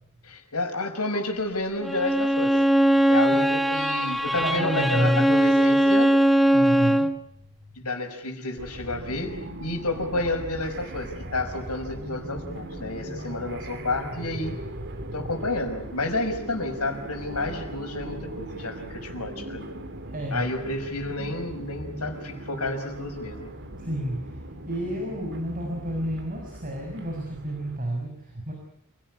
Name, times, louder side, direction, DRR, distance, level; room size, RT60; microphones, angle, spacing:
voice 1, 0.2-2.5 3.1-6.1 7.7-14.6 15.1-19.7 20.3-23.5, left 2 dB, 80° left, 5 dB, 5.6 m, -30 dB
Bowed string instrument, 1.8-7.2, right 1 dB, ahead, 1.3 m, -20 dB
voice 2, 4.4-5.4 6.5-7.1 20.1-20.5 23.8-24.3 24.7-28.5, right 1 dB, 40° right, 1 dB, 6.4 m, -29 dB
sound 1, 8.6-27.8, right 1 dB, 55° right, 3.2 m, -39 dB
28.0 x 18.0 x 9.8 m, 0.74 s
head